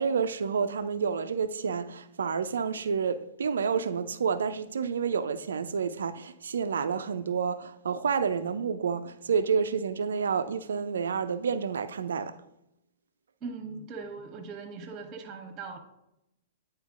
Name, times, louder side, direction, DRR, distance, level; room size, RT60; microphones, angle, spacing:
voice 1, 0.0-12.3, right 6 dB, 75° right, 0.4 m, -29 dB
voice 2, 13.4-15.8, right 4 dB, 30° right, 1.2 m, -40 dB
9.2 x 4.3 x 2.5 m
figure-of-eight pair, 110°, 0 cm